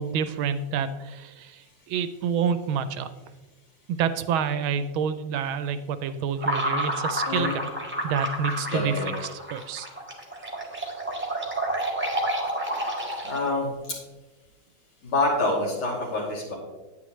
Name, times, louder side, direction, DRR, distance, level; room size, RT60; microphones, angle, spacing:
voice 1, 0.0-3.1 3.9-7.6 8.0-9.9, right 7 dB, 80° right, 12 dB, 1.3 m, -28 dB
sound 1, 6.4-13.6, right 1 dB, 5° right, 1.1 m, -30 dB
voice 2, 8.7-9.1 13.2-13.7 15.0-16.5, left 2 dB, 80° left, -4 dB, 3.6 m, -26 dB
9.5 x 9.4 x 3.1 m, 1.2 s
omnidirectional pair, 2.3 m